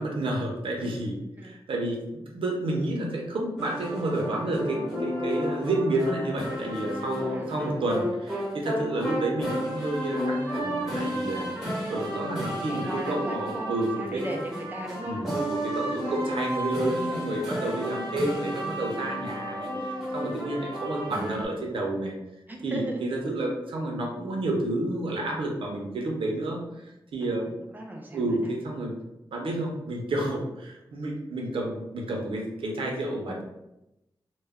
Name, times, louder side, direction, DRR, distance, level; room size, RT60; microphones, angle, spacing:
voice 1, 0.0-14.4 15.0-22.1 22.6-27.5 28.1-29.0 29.3-33.4, right 1 dB, 90° right, -1 dB, 0.5 m, -30 dB
sound 1, 3.6-21.4, equal, 5° right, 0.9 m, -32 dB
voice 2, 12.7-15.2 16.0-16.2 22.5-23.0 27.7-28.5, right 1 dB, 20° right, 0 dB, 0.5 m, -36 dB
2.2 x 2.1 x 3.4 m, 0.91 s
wide cardioid pair, 105°, 9 cm